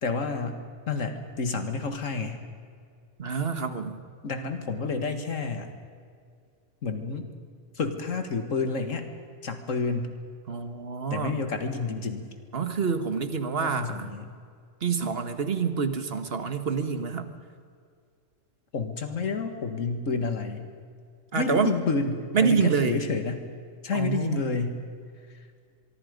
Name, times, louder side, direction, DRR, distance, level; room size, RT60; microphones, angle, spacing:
voice 1, 0.0-2.4 4.2-5.7 6.8-7.3 7.8-9.1 9.4-10.2 11.1-12.3 13.6-14.4 18.7-20.7 21.3-23.4 23.8-24.8, left 4 dB, 80° left, 7 dB, 2.1 m, -30 dB
voice 2, 3.2-4.0 10.5-11.4 12.5-14.2 14.8-17.3 21.3-21.7 22.3-23.0 23.9-24.4, right 5 dB, 50° right, 9 dB, 1.6 m, -27 dB
24.0 x 23.5 x 5.2 m, 2.2 s
omnidirectional pair, 1.3 m